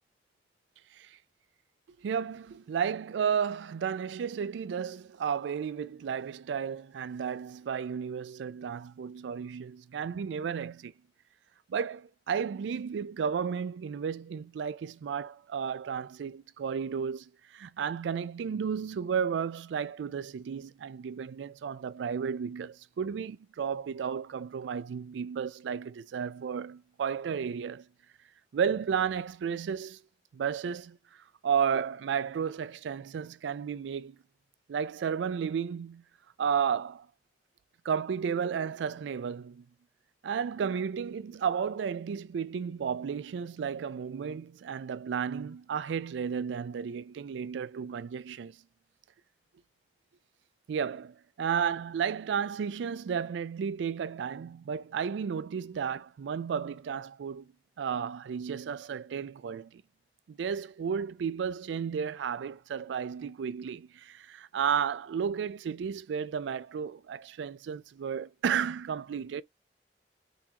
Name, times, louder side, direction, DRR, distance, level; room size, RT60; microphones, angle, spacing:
voice 1, 2.0-10.9 11.7-27.9 28.5-30.0 30.3-34.2 34.7-36.0 36.4-37.1 37.8-39.7 40.2-48.6 50.7-59.8 60.3-69.4, right 7 dB, 85° right, 0.3 m, -33 dB
3.9 x 2.8 x 2.3 m
head